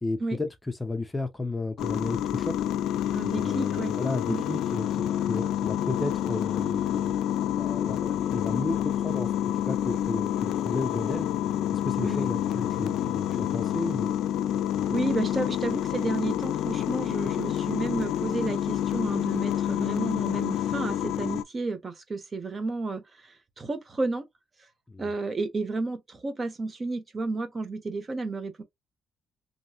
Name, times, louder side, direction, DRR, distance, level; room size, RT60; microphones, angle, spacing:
voice 1, 0.0-0.5 0.8-2.6 3.4-4.9 5.3-7.1 7.5-11.3 11.7-14.2 14.8-15.0 24.9-25.1, left 2 dB, 20° left, 0.6 m, -33 dB
sound 1, 1.8-21.4, left 11 dB, 85° left, 0.3 m, -28 dB
voice 2, 3.1-3.9 4.3-4.4 12.0-12.3 14.9-24.3 25.0-28.6, right 3 dB, 35° right, 1.0 m, -32 dB
3.1 x 2.6 x 2.4 m
cardioid pair, 90°, 0 cm